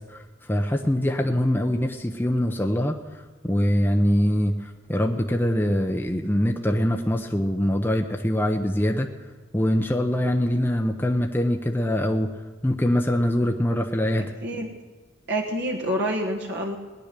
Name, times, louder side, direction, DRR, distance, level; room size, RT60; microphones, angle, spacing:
voice 1, 0.0-9.1 9.5-12.3 12.6-14.3, equal, 10° left, 2 dB, 0.7 m, -23 dB
voice 2, 14.2-14.7 15.3-16.8, right 1 dB, 60° right, -1 dB, 1.4 m, -27 dB
18.5 x 10.5 x 6.7 m, 1.4 s
head